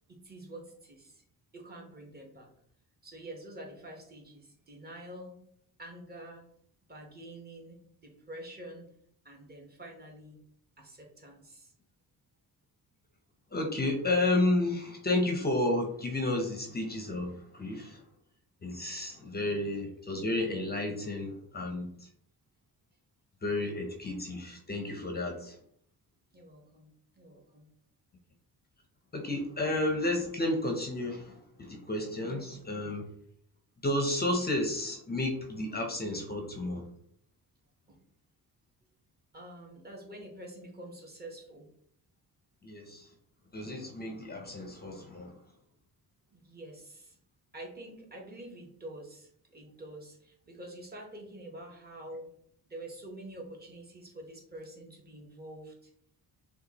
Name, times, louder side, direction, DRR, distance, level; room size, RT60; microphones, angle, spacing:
voice 1, 0.1-1.2 1.5-2.5 3.0-5.4 5.8-6.4 6.9-8.9 9.2-10.4 10.8-11.7 26.3-27.7 32.2-32.6 37.9-38.0 39.3-41.7 46.3-47.2 47.5-52.3 52.7-55.9, right 1 dB, 25° right, 0 dB, 1.1 m, -47 dB
voice 2, 13.5-18.0 18.6-22.1 23.4-25.6 29.1-33.0 33.8-36.9 42.6-43.1 43.5-45.4, left 2 dB, 25° left, 3 dB, 0.6 m, -32 dB
6.5 x 2.4 x 2.9 m, 0.67 s
cardioid pair, 130°, 39 cm